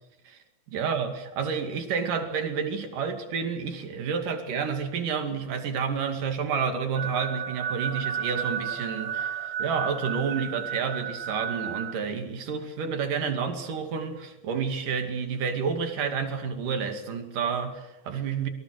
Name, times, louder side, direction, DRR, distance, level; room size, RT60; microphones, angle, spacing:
voice 1, 0.7-18.5, right 6 dB, 85° right, 6 dB, 4.0 m, -30 dB
sound 1, 6.9-11.9, right 8 dB, 55° right, 2.6 m, -32 dB
27.0 x 23.5 x 6.6 m, 0.91 s
omnidirectional pair, 3.6 m